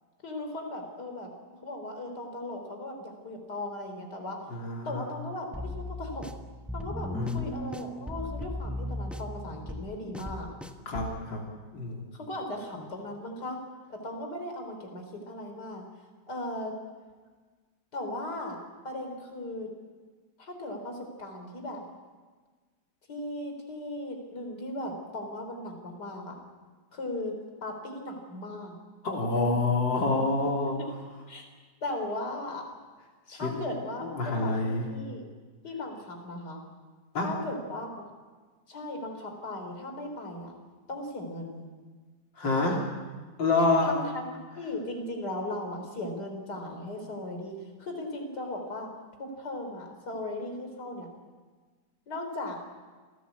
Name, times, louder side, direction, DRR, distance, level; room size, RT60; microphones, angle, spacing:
voice 1, 0.2-1.3 1.6-4.4 4.8-6.3 6.7-10.5 12.1-13.6 13.9-15.8 16.3-16.7 17.9-18.6 18.8-19.7 20.4-21.8 23.1-26.4 26.9-27.4 27.6-28.7 30.7-30.9 31.3-31.5 31.8-32.6 33.3-35.3 35.6-36.6 37.2-38.0 38.7-40.6 40.9-41.7 43.8-44.3 44.5-48.9 49.2-51.1 52.1-52.6, left 1 dB, 60° left, 3 dB, 4.4 m, -37 dB
voice 2, 4.5-5.1 7.1-7.4 10.9-11.4 11.7-12.0 29.0-30.8 33.3-33.6 34.0-34.9 37.1-37.3 42.4-42.8 43.4-43.9, left 3 dB, 90° left, -1 dB, 4.0 m, -27 dB
sound 1, 5.5-11.2, left 1 dB, ahead, 1.0 m, -37 dB
28.5 x 17.0 x 8.3 m, 1.4 s
omnidirectional pair, 2.0 m